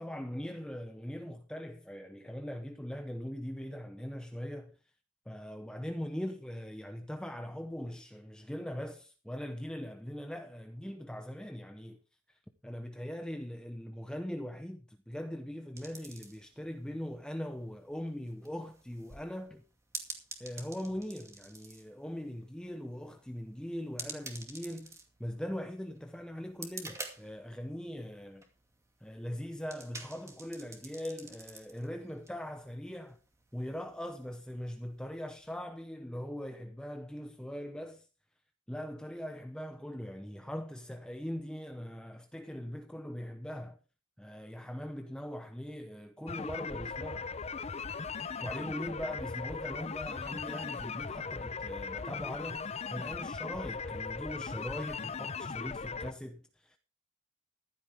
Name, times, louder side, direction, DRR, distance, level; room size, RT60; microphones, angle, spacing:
voice 1, 0.0-4.8 5.3-12.0 12.3-19.6 20.4-28.5 29.0-33.2 33.5-38.1 38.7-43.8 44.2-47.3 48.2-56.8, equal, 5° left, 0.7 m, -41 dB
sound 1, 15.8-35.7, right 3 dB, 15° right, 2.3 m, -50 dB
sound 2, 46.3-56.1, left 5 dB, 35° left, 0.6 m, -38 dB
15.0 x 12.0 x 3.5 m
head